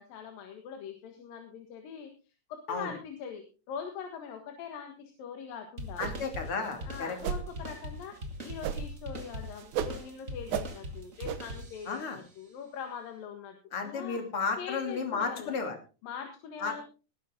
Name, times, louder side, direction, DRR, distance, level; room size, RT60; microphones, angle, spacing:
voice 1, 0.0-2.1 2.5-6.1 6.9-14.2 14.6-15.6 16.0-16.8, left 7 dB, 90° left, 4 dB, 3.4 m, -42 dB
sound 1, 5.8-12.1, equal, 30° right, 1.9 m, -41 dB
voice 2, 6.0-7.2 11.9-12.2 13.7-15.8 16.6-16.8, left 4 dB, 40° left, 5 dB, 3.4 m, -33 dB
sound 2, 6.0-6.4 6.7-6.8 7.2-7.5 8.6-9.0 9.3-10.0 10.5-10.7 11.2-11.4, right 9 dB, 70° right, 2.4 m, -34 dB
19.0 x 10.5 x 3.7 m, 0.34 s
omnidirectional pair, 3.9 m